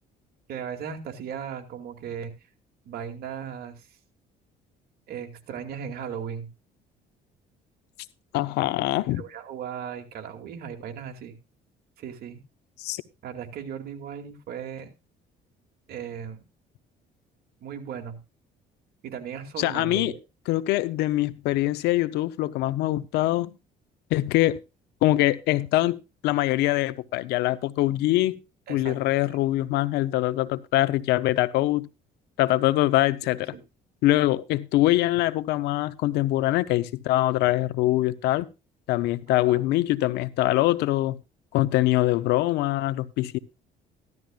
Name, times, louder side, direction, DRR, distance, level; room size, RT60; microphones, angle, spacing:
voice 1, 0.5-2.3 2.8-3.9 5.1-6.5 9.1-11.3 12.0-12.4 13.2-14.9 15.9-16.4 17.6-18.2 19.0-20.2 28.7-29.0 33.5-33.6 39.4-39.6, right 8 dB, 65° right, 2.5 m, -37 dB
voice 2, 8.3-9.2 12.8-13.0 19.6-20.1 20.5-23.5 24.1-24.6 25.0-28.4 28.7-31.9 32.4-33.5 34.0-38.5 38.9-41.2 41.5-43.4, left 16 dB, 90° left, 0.8 m, -23 dB
15.0 x 12.0 x 2.4 m
cardioid pair, 110°, 17 cm